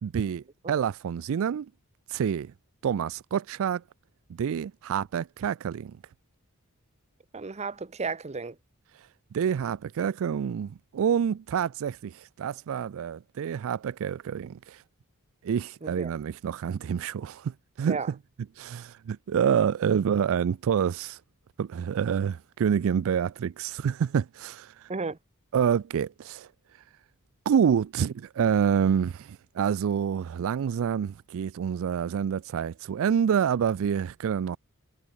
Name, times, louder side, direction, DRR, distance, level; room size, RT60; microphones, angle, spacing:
voice 1, 0.0-1.7 2.1-2.5 2.8-3.8 4.4-6.0 9.3-14.8 15.4-18.0 18.6-21.2 21.6-24.9 25.5-26.5 27.5-34.6, right 8 dB, 65° right, 0.3 m, -27 dB
voice 2, 7.3-8.5 15.8-16.1 17.9-18.1 24.9-25.2, right 4 dB, 30° right, 0.8 m, -33 dB
head